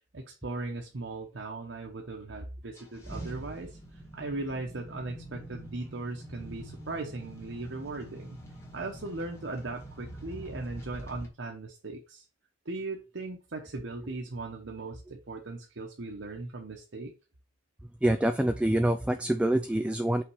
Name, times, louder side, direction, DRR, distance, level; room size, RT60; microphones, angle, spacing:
voice 1, 0.1-8.4 8.7-12.2 12.6-17.1, right 2 dB, 85° right, 1.0 m, -38 dB
sound 1, 2.7-11.3, right 1 dB, 15° left, 1.8 m, -45 dB
voice 2, 18.0-20.2, right 1 dB, 5° right, 0.4 m, -26 dB
5.8 x 3.6 x 4.7 m
head